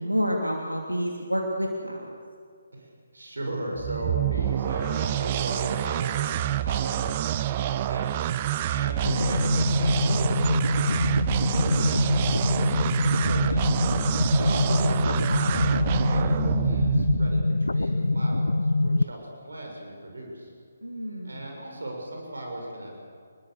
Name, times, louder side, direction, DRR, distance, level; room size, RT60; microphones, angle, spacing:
voice 1, 0.0-2.2 11.4-12.0 20.8-21.5, equal, 90° right, 1 dB, 3.0 m, -29 dB
voice 2, 2.7-7.1 7.6-8.2 8.7-13.9 14.4-20.5 21.2-23.0, right 1 dB, 65° right, 1 dB, 7.1 m, -37 dB
sound 1, 3.7-17.5, right 12 dB, 30° right, 0.7 m, -27 dB
sound 2, 9.0-19.0, left 2 dB, 70° left, 0.6 m, -24 dB
30.0 x 21.0 x 6.7 m, 2.3 s
figure-of-eight pair, 145°, 0 cm